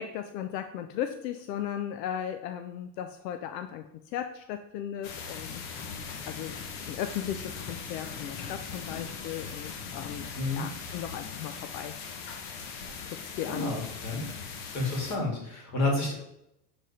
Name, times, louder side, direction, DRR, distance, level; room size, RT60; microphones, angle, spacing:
voice 1, 0.0-5.6 6.2-6.6 6.9-10.3 10.5-11.9 13.1-13.7, left 10 dB, 80° left, 9 dB, 0.6 m, -36 dB
sound 1, 5.0-15.2, left 5 dB, 60° left, 1.1 m, -40 dB
voice 2, 13.4-14.2 14.7-16.1, left 2 dB, 35° left, 0 dB, 2.3 m, -30 dB
7.0 x 3.7 x 4.1 m, 0.82 s
supercardioid pair, 140°, 49 cm